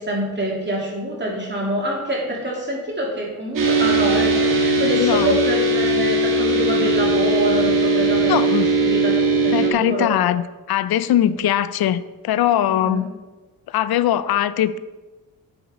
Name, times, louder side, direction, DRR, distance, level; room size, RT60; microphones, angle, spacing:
voice 1, 0.0-10.2 11.2-11.4 12.7-13.0, right 1 dB, 30° right, -2 dB, 3.2 m, -26 dB
sound 1, 3.6-9.7, right 2 dB, 60° right, 2.1 m, -19 dB
voice 2, 4.9-5.4 8.3-8.7 9.5-13.1 13.7-14.8, left 11 dB, 85° left, 15 dB, 0.6 m, -21 dB
9.1 x 8.4 x 4.9 m, 1.2 s
cardioid pair, 115°, 36 cm